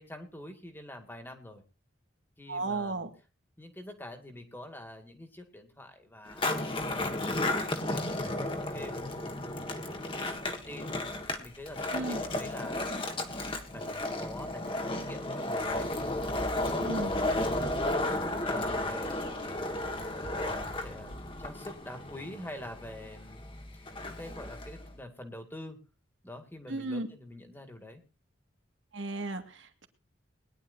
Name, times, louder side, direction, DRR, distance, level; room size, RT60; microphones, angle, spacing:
voice 1, 0.0-1.6 2.4-3.1 3.6-9.4 9.8-11.0 11.4-12.9 13.7-15.9 16.2-19.3 19.9-20.0 20.3-23.4 23.7-25.8 26.2-28.0, left 1 dB, 10° left, 6 dB, 2.1 m, -46 dB
voice 2, 2.5-3.1 11.9-12.2 16.8-17.1 26.7-27.1 28.9-29.9, right 2 dB, 70° right, 6 dB, 2.1 m, -34 dB
Skateboard, 6.3-24.9, left 1 dB, 25° left, 1.6 m, -33 dB
sound 1, 15.6-21.5, equal, 75° left, 6.5 m, -45 dB
21.5 x 11.0 x 2.7 m, 0.33 s
head